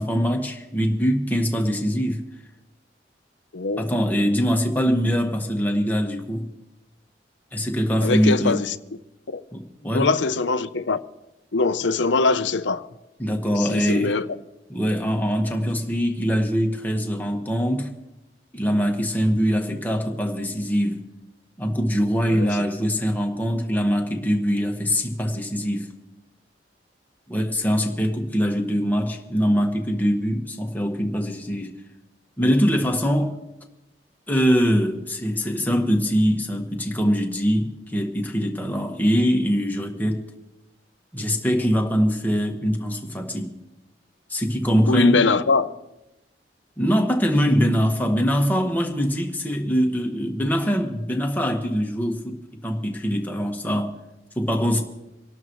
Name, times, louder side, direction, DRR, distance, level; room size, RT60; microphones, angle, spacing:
voice 1, 0.0-2.2 3.8-6.5 7.5-8.6 9.5-10.1 13.2-14.2 14.7-17.9 18.5-21.0 21.6-25.9 27.3-31.8 32.4-33.4 34.3-40.2 41.1-43.5 44.3-45.4 46.8-52.4 52.6-53.9 54.3-54.8, equal, 10° left, 1.6 m, -23 dB
voice 2, 3.5-3.9 8.0-8.7 9.3-9.4 9.9-11.0 11.5-12.9 13.6-14.3 22.3-22.5 44.9-45.7, left 4 dB, 90° left, 0.7 m, -22 dB
25.5 x 12.0 x 3.1 m
head